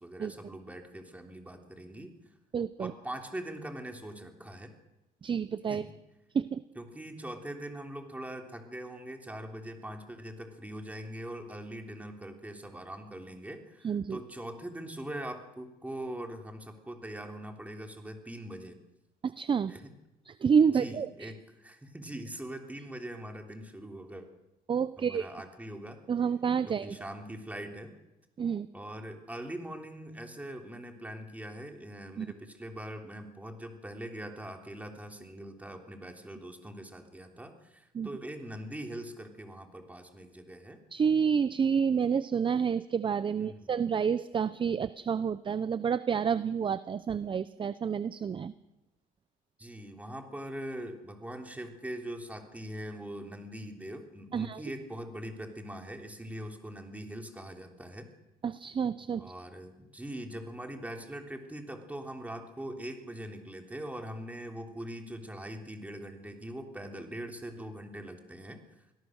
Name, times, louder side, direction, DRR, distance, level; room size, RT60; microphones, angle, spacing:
voice 1, 0.0-2.1 2.8-4.7 5.7-5.9 6.7-18.8 19.7-19.9 20.7-24.3 25.0-26.0 26.7-27.9 28.7-40.8 43.4-43.9 49.6-58.1 59.2-68.6, right 1 dB, 10° right, 4 dB, 3.4 m, -42 dB
voice 2, 2.5-2.9 5.2-5.8 6.3-6.6 13.8-14.2 19.2-19.7 20.3-21.3 24.7-25.3 26.1-27.0 28.4-28.7 32.2-32.3 37.9-38.1 40.9-48.5 54.3-54.6 58.4-59.2, right 6 dB, 30° right, 15 dB, 0.6 m, -29 dB
25.0 x 17.5 x 6.5 m, 0.96 s
cardioid pair, 110°, 17 cm